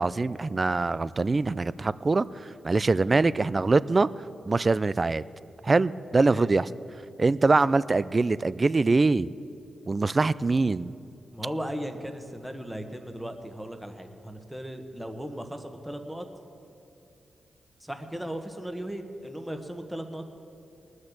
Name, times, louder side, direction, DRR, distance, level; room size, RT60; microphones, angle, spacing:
voice 1, 0.0-2.3 2.6-4.1 4.5-5.2 5.6-6.7 7.2-9.3 9.9-10.9, right 3 dB, 35° right, 18 dB, 0.4 m, -23 dB
voice 2, 11.3-16.3 17.8-20.3, equal, 5° right, 6 dB, 1.3 m, -37 dB
19.5 x 6.5 x 7.2 m, 2.6 s
cardioid pair, 60°, 0 cm